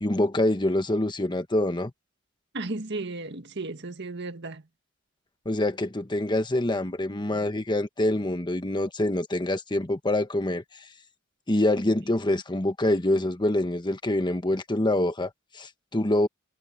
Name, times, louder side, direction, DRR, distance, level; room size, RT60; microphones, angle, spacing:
voice 1, 0.0-1.9 5.4-10.6 11.5-16.3, left 1 dB, 25° left, 1.3 m, -25 dB
voice 2, 2.5-4.6, right 2 dB, 60° right, 1.7 m, -34 dB
head